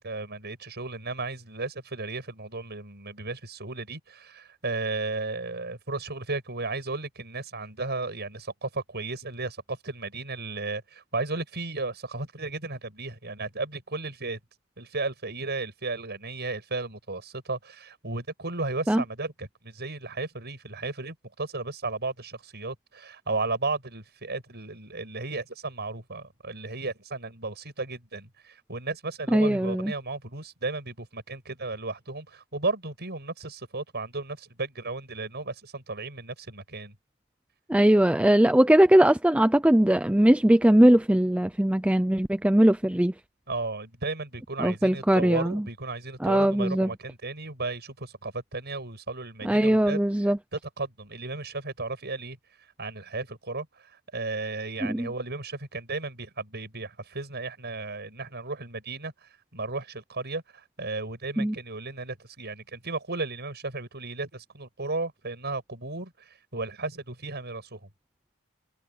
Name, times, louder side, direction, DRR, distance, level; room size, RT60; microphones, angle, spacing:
voice 1, 0.0-14.4 14.8-36.9 43.5-50.0 50.5-52.4 52.8-67.9, right 3 dB, 50° right, 7.6 m, -34 dB
voice 2, 29.3-29.9 37.7-43.1 44.6-45.6 46.2-46.9 49.4-50.4 54.8-55.1 61.4-61.5, right 1 dB, 5° right, 0.5 m, -20 dB
head